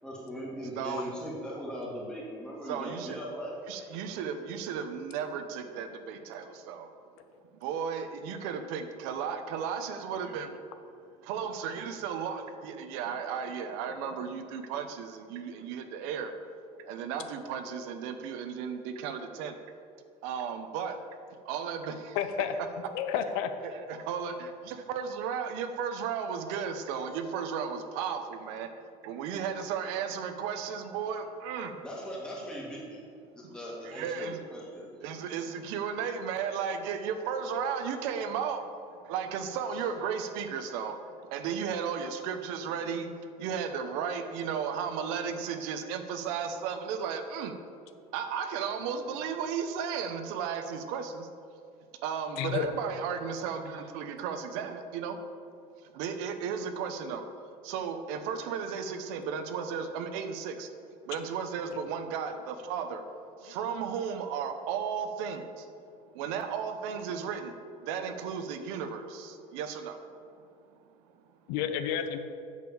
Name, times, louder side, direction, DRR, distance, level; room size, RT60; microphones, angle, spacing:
voice 1, 0.0-3.6 31.8-33.0 33.3-34.9, equal, 5° left, -4 dB, 2.2 m, -39 dB
voice 2, 0.8-1.2 2.7-3.2 3.7-6.9 7.5-10.6 11.2-16.3 16.8-19.5 20.2-21.0 21.4-22.2 23.6-28.7 29.0-31.8 33.4-33.5 33.8-34.4 35.0-41.0 41.3-47.5 48.1-51.3 52.0-55.2 55.9-57.3 57.6-60.7 61.0-63.0 63.4-65.7 66.1-70.0, right 7 dB, 80° right, 7 dB, 1.0 m, -34 dB
voice 3, 22.1-22.5 22.9-23.5 52.4-52.7 71.5-72.2, left 9 dB, 80° left, 8 dB, 0.8 m, -30 dB
8.3 x 6.7 x 7.1 m, 2.4 s
cardioid pair, 155°, 14 cm